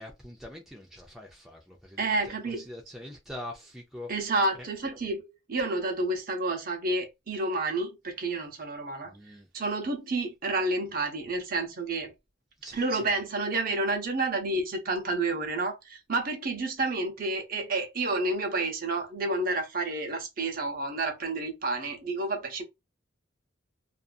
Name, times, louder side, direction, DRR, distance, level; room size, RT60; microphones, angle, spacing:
voice 1, 0.0-4.1 9.1-9.5 12.6-13.2, left 1 dB, ahead, 0.4 m, -44 dB
voice 2, 2.0-2.6 4.1-9.1 9.5-12.1 12.7-22.6, right 2 dB, 45° right, 0.7 m, -30 dB
2.6 x 2.4 x 2.2 m
head